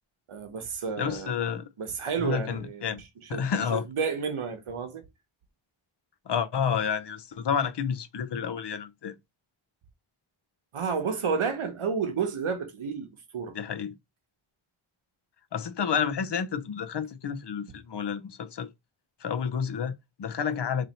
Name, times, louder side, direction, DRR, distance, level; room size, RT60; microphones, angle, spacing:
voice 1, 0.3-1.3 1.8-3.0 3.3-3.4 3.7-5.0 10.7-13.6, right 6 dB, 90° right, 1.0 m, -31 dB
voice 2, 1.0-1.7 2.2-3.0 3.3-3.8 6.3-9.2 13.5-13.9 15.5-18.7 19.2-20.9, left 7 dB, 55° left, 0.6 m, -30 dB
3.1 x 2.7 x 4.0 m
wide cardioid pair, 75°, 49 cm